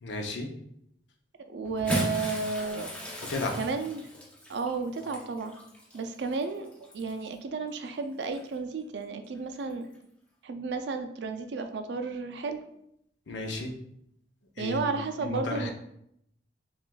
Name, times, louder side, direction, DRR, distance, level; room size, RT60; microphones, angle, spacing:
voice 1, 0.0-0.5 3.3-3.6 13.3-13.7 14.6-15.7, left 2 dB, 80° left, 2 dB, 0.6 m, -33 dB
voice 2, 1.5-2.9 3.6-4.0 4.5-5.5 5.9-6.7 6.9-9.9 10.4-12.6 14.6-15.7, right 4 dB, 70° right, 7 dB, 0.4 m, -32 dB
Bathtub (filling or washing) / Splash splatter, 1.7-7.3 8.2-8.4 9.8-9.9, equal, 5° left, 0.4 m, -37 dB
5.8 x 2.4 x 2.3 m, 0.76 s
head